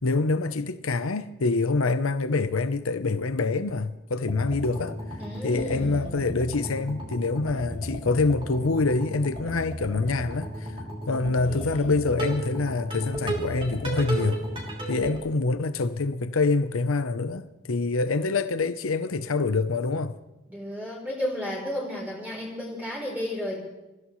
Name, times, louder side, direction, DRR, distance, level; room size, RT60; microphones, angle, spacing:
voice 1, 0.0-5.0 5.4-10.7 11.1-14.4 14.9-20.2, left 3 dB, 90° left, 0.8 m, -26 dB
sound 1, 4.2-15.2, right 1 dB, 25° right, 3.0 m, -35 dB
voice 2, 5.2-6.3 11.1-11.9 20.5-23.6, left 1 dB, 10° right, 3.6 m, -33 dB
27.0 x 15.5 x 3.2 m
head